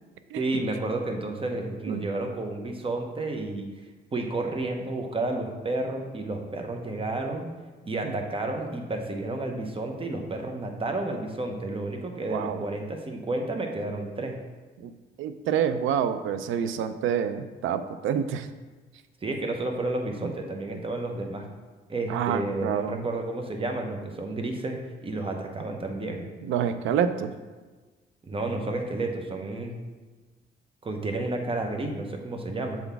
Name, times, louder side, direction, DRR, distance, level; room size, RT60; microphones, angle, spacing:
voice 1, 0.4-3.7 4.1-7.5 7.8-14.4 19.2-21.5 21.9-26.3 28.2-29.8 30.8-32.8, right 2 dB, 25° right, 4 dB, 0.9 m, -31 dB
voice 2, 12.3-12.6 14.8-14.9 15.2-18.5 22.1-23.1 26.4-27.3, right 8 dB, 85° right, 11 dB, 0.4 m, -27 dB
7.0 x 4.0 x 3.4 m, 1.3 s
cardioid pair, 90°, 20 cm